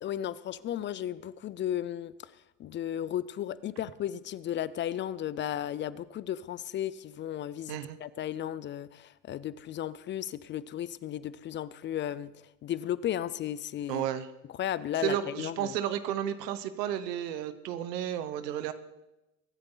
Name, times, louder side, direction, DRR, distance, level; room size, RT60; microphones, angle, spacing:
voice 1, 0.0-2.3 2.6-12.3 12.6-14.1 14.6-15.8, left 11 dB, 25° left, 18 dB, 0.4 m, -34 dB
voice 2, 13.9-14.3 15.0-18.7, right 10 dB, 80° right, 12 dB, 1.1 m, -32 dB
24.0 x 8.7 x 3.9 m, 0.97 s
hypercardioid pair, 90°, 48 cm